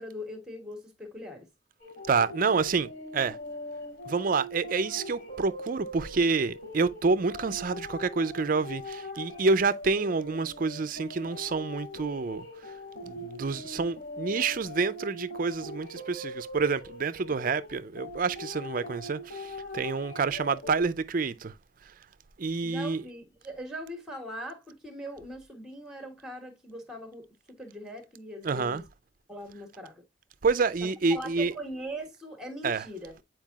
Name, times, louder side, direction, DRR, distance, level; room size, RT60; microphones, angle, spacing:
voice 1, 0.0-1.5 22.6-28.8 29.3-30.0 30.8-33.2, equal, 5° right, 1.4 m, -41 dB
sound 1, 1.8-20.8, left 1 dB, 55° left, 2.9 m, -42 dB
voice 2, 2.1-3.4 4.1-12.5 13.1-21.5 22.4-23.0 28.4-28.8 30.4-31.5 32.6-32.8, right 4 dB, 45° right, 0.4 m, -28 dB
9.1 x 4.6 x 2.3 m
head